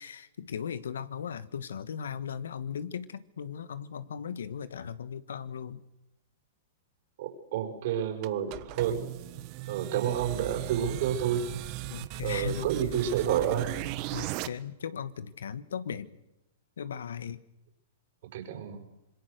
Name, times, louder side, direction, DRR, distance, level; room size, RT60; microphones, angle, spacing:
voice 1, 0.0-5.8 11.9-12.7 14.1-16.1 16.8-17.4, left 7 dB, 85° left, 15 dB, 1.3 m, -37 dB
voice 2, 7.2-9.1 9.7-11.4 12.2-13.7 18.3-18.8, right 9 dB, 60° right, 3 dB, 5.3 m, -30 dB
sound 1, 8.2-14.5, right 16 dB, 45° right, 1.1 m, -37 dB
26.5 x 21.5 x 6.6 m, 0.92 s
hypercardioid pair, 125°, 0 cm